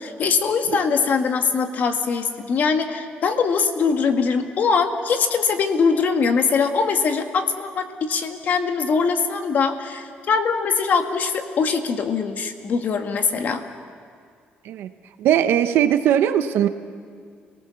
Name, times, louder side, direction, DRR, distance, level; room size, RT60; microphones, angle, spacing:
voice 1, 0.0-13.6, left 5 dB, 50° left, 6 dB, 1.8 m, -22 dB
voice 2, 15.2-16.7, right 10 dB, 80° right, 9 dB, 1.1 m, -19 dB
29.5 x 19.0 x 7.1 m, 2.1 s
cardioid pair, 135°, 4 cm